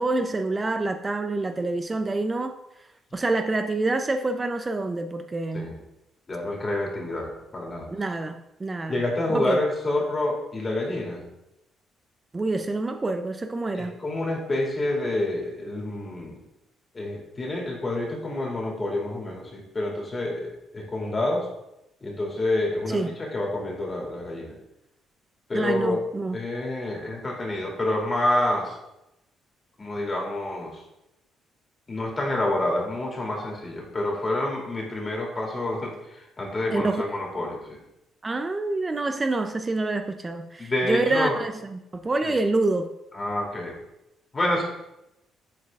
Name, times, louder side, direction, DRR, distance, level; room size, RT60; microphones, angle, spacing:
voice 1, 0.0-2.6 3.1-5.7 7.9-9.0 9.3-9.6 12.3-14.0 22.9-23.1 25.5-26.4 36.7-37.2 38.2-42.9, right 2 dB, 30° right, 7 dB, 0.5 m, -27 dB
voice 2, 6.3-7.9 8.9-11.2 13.7-16.4 16.9-21.5 22.0-24.5 25.5-26.0 26.3-28.8 29.8-30.7 31.9-37.8 40.6-41.4 42.2-42.4 43.1-43.8 44.3-44.6, left 1 dB, 35° left, -2 dB, 2.7 m, -28 dB
7.6 x 4.5 x 3.6 m, 0.88 s
supercardioid pair, 65°, 0 cm